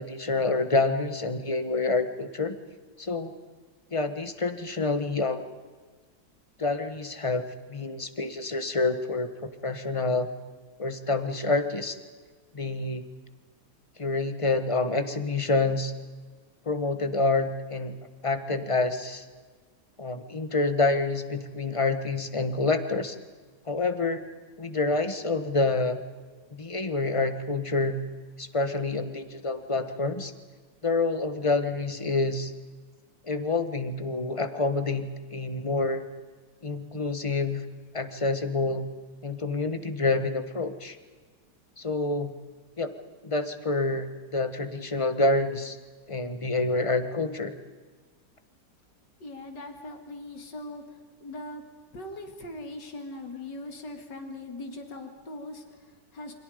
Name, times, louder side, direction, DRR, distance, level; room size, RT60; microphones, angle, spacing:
voice 1, 0.0-2.6 3.0-3.3 3.9-5.5 6.6-10.3 10.8-12.0 12.5-13.1 14.0-15.9 16.6-18.0 18.2-19.2 20.0-23.1 23.7-24.2 24.6-26.0 26.5-28.0 28.4-30.3 30.8-32.5 33.2-36.0 36.6-37.7 37.9-38.9 39.2-41.0 41.8-42.3 42.8-42.9 43.2-45.8 46.1-47.5, left 3 dB, 20° left, 9 dB, 1.3 m, -27 dB
voice 2, 49.2-51.6 51.9-56.3, left 2 dB, 80° left, 4 dB, 3.1 m, -40 dB
29.0 x 26.0 x 5.1 m, 1.4 s
omnidirectional pair, 1.9 m